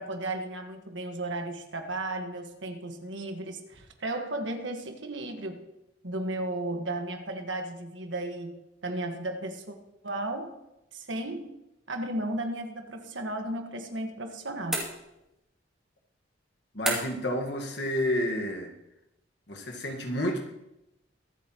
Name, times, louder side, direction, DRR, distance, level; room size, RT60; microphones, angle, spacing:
voice 1, 0.0-5.6 6.0-9.8 10.0-10.5 10.9-11.5 11.9-14.8, right 1 dB, 85° right, 5 dB, 1.6 m, -34 dB
sound 1, 14.7-15.4 16.8-17.3, right 1 dB, 5° right, 2.7 m, -32 dB
voice 2, 16.7-18.7 19.5-20.5, left 1 dB, 65° left, 2 dB, 1.6 m, -30 dB
23.5 x 8.0 x 3.0 m, 0.91 s
head